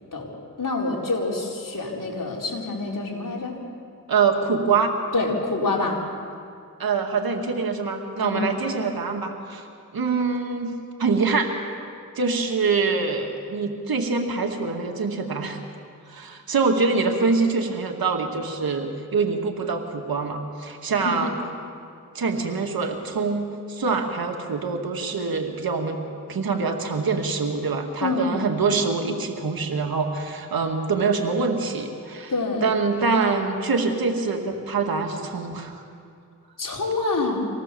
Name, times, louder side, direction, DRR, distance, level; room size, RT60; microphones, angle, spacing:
voice 1, 0.6-3.6 5.1-6.0 8.2-8.4 21.0-21.2 28.0-28.3 32.3-32.6 36.6-37.5, left 3 dB, 65° left, -2 dB, 4.4 m, -26 dB
voice 2, 4.1-5.0 6.8-9.7 9.9-10.7 11.0-11.5 12.2-15.6 16.1-21.4 22.1-26.0 26.3-32.3 32.6-35.8, right 4 dB, 90° right, 3 dB, 2.2 m, -24 dB
26.0 x 18.5 x 7.0 m, 2.3 s
cardioid pair, 50°, 35 cm